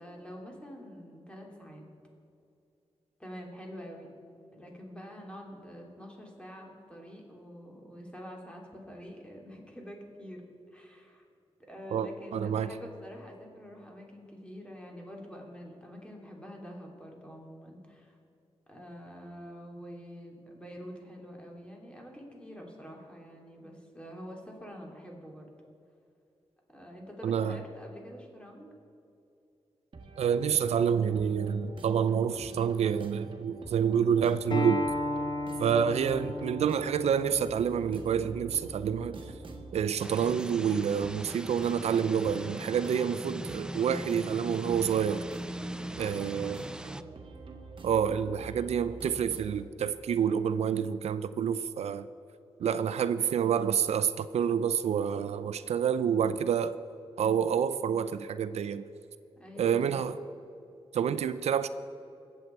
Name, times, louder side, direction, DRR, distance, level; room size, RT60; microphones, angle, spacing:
voice 1, 0.0-1.8 3.2-4.1 4.5-10.4 10.7-11.2 11.7-18.2 18.7-25.5 26.7-28.7 45.9-47.1 59.4-60.1, equal, 10° left, 0 dB, 3.1 m, -46 dB
voice 2, 12.3-12.7 27.2-27.6 30.2-34.8 35.6-39.2 39.7-45.2 46.0-46.6 47.8-52.1 52.6-56.7 57.2-58.8 59.6-60.1 60.9-61.7, right 8 dB, 80° right, 13 dB, 0.4 m, -28 dB
sound 1, 29.9-49.6, right 2 dB, 50° right, 1.5 m, -47 dB
Acoustic guitar, 34.5-39.7, left 2 dB, 45° left, 1.1 m, -36 dB
sound 2, 40.0-47.0, right 1 dB, 5° right, 0.5 m, -40 dB
21.0 x 8.0 x 4.6 m, 2.7 s
cardioid pair, 65°, 11 cm